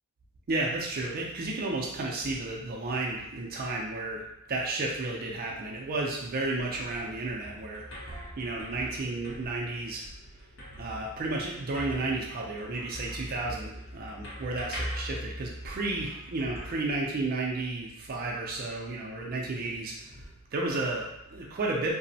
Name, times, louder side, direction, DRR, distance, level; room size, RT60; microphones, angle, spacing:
voice 1, 0.5-10.5 10.8-21.9, right 2 dB, 40° right, -2 dB, 0.4 m, -33 dB
sound 1, 6.3-17.6, equal, 55° left, 0.8 m, -42 dB
2.9 x 2.0 x 2.7 m, 0.84 s
head